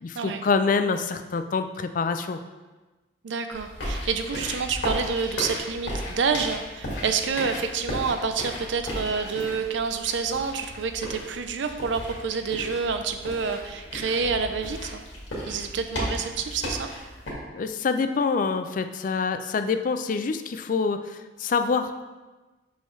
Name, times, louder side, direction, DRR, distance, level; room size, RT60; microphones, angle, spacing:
voice 1, 0.0-2.4 17.5-22.0, left 5 dB, 45° left, 9 dB, 0.4 m, -26 dB
voice 2, 3.2-15.0 15.5-16.9, right 5 dB, 75° right, 8 dB, 0.5 m, -28 dB
sound 1, 3.5-17.3, equal, 85° left, 2.0 m, -35 dB
6.2 x 5.4 x 3.2 m, 1.2 s
head